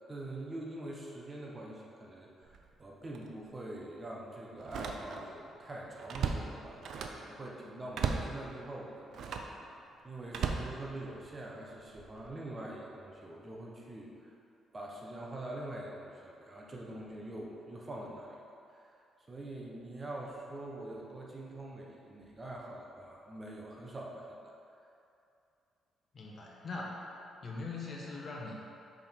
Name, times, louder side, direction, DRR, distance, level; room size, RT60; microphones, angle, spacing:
voice 1, 0.1-9.6 10.0-14.4 14.7-18.4 18.7-18.9 19.3-24.5, right 1 dB, 30° right, -2 dB, 0.9 m, -44 dB
Slam, 2.4-2.7 3.1-3.3 4.6-5.4 5.7-7.3 7.9-8.4 9.1-9.6 10.3-11.4 12.0-12.3, right 6 dB, 70° right, 0.4 m, -36 dB
voice 2, 26.1-26.9 27.4-28.5, left 3 dB, 45° left, -3 dB, 1.0 m, -41 dB
5.9 x 4.4 x 3.6 m, 2.7 s
cardioid pair, 90°, 0 cm